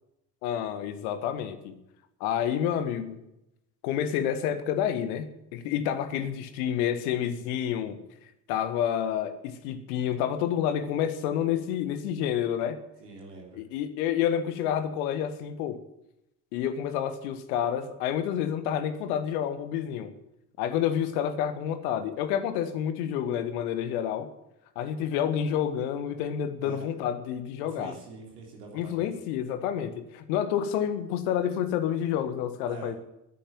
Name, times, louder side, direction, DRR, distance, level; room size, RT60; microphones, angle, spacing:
voice 1, 0.4-1.7 2.2-3.2 3.8-8.0 8.5-12.8 13.5-15.8 16.5-20.1 20.6-24.3 24.7-27.9 28.7-32.9, left 9 dB, 60° left, 11 dB, 1.7 m, -29 dB
voice 2, 13.0-13.6 26.6-26.9 27.6-29.1 32.6-33.0, right 4 dB, 70° right, 0 dB, 3.3 m, -44 dB
13.5 x 10.5 x 8.7 m, 0.87 s
figure-of-eight pair, 55°, 49 cm